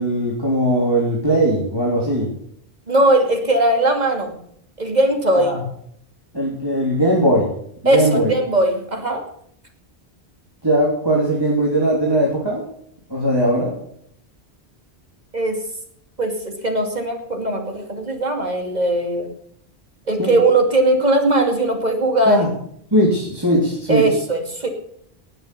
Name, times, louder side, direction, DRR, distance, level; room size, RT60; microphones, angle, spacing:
voice 1, 0.0-2.3 5.3-5.6 6.3-7.5 7.8-8.3 10.6-12.7 13.1-13.7 20.2-20.3 22.2-22.5 22.9-24.0, right 1 dB, 20° right, -4 dB, 3.1 m, -19 dB
voice 2, 2.9-4.4 4.8-5.6 7.8-9.2 15.3-15.6 16.2-19.3 20.1-22.4 23.9-24.7, right 1 dB, 40° right, 3 dB, 2.7 m, -19 dB
19.0 x 7.9 x 6.9 m, 0.68 s
omnidirectional pair, 1.1 m